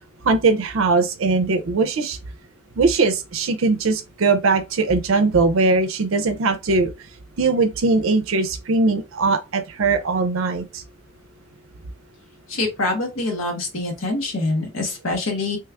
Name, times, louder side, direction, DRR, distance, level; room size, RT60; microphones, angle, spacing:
voice 1, 0.2-2.2 2.8-6.9 7.4-10.8, right 3 dB, 80° right, 0.5 m, -20 dB
voice 2, 12.5-15.6, left 2 dB, 80° left, 0.9 m, -25 dB
3.0 x 2.3 x 3.3 m
head